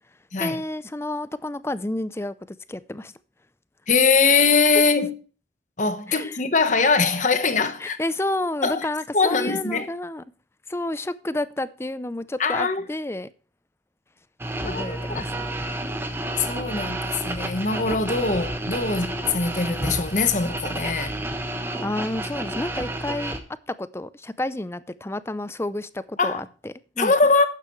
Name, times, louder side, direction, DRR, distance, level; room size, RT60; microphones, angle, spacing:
voice 1, 0.4-3.1 6.1-6.4 7.8-10.2 10.7-13.3 14.6-15.9 21.8-23.4 23.7-27.1, left 1 dB, 15° left, 0.5 m, -30 dB
voice 2, 3.9-5.1 5.8-8.0 8.6-8.9 9.1-9.9 12.4-12.8 14.6-15.3 16.4-21.1 26.2-26.4 27.0-27.5, left 4 dB, 40° left, 1.2 m, -22 dB
sound 1, 14.4-23.4, right 1 dB, 15° right, 1.2 m, -30 dB
11.5 x 9.1 x 3.1 m
head